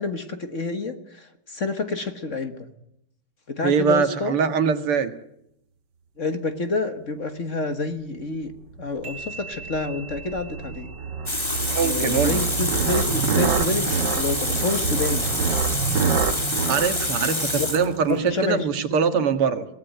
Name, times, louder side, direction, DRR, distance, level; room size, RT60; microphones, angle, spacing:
voice 1, 0.0-2.7 3.5-4.4 6.2-8.5 8.8-10.9 11.8-15.3 17.6-17.7 18.1-18.7 19.2-19.3, left 3 dB, 40° left, 9 dB, 1.5 m, -28 dB
voice 2, 3.6-5.1 11.7-12.4 16.7-19.7, right 6 dB, 85° right, 9 dB, 2.5 m, -22 dB
sound 1, 8.8-18.3, right 6 dB, 60° right, 1.6 m, -27 dB
sound 2, 9.0-12.6, right 4 dB, 35° right, 4.2 m, -43 dB
Water tap faucet, 11.3-18.3, left 1 dB, 15° left, 2.0 m, -27 dB
23.0 x 17.5 x 9.3 m, 0.79 s
omnidirectional pair, 2.4 m